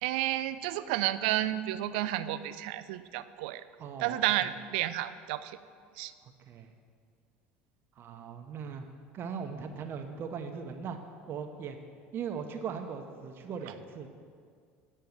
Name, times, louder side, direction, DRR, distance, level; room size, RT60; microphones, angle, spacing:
voice 1, 0.0-3.6 4.0-5.6 6.0-6.1, right 14 dB, 70° right, 13 dB, 0.4 m, -31 dB
voice 2, 3.8-4.2 6.5-6.7 8.0-8.9 9.1-11.0 11.3-11.8 12.1-14.1, right 6 dB, 45° right, 5 dB, 0.8 m, -39 dB
8.5 x 5.5 x 7.9 m, 2.1 s
hypercardioid pair, 80°, 5 cm